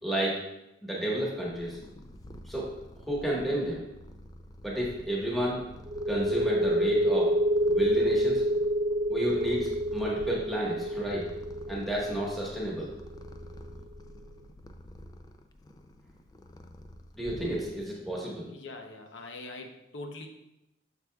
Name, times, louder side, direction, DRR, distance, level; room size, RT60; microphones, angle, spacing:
voice 1, 0.0-0.4 0.8-1.8 2.5-2.7 3.0-3.8 4.6-5.6 6.1-7.3 7.7-8.4 9.1-11.3 11.7-12.9 17.1-18.5, right 1 dB, ahead, -5 dB, 1.4 m, -31 dB
Purr, 1.3-18.0, left 1 dB, 20° left, 0.4 m, -48 dB
sound 1, 5.9-13.3, right 1 dB, 25° right, 0.9 m, -27 dB
voice 2, 18.5-20.3, left 2 dB, 75° left, 3 dB, 0.8 m, -42 dB
8.1 x 6.7 x 2.3 m, 0.88 s
head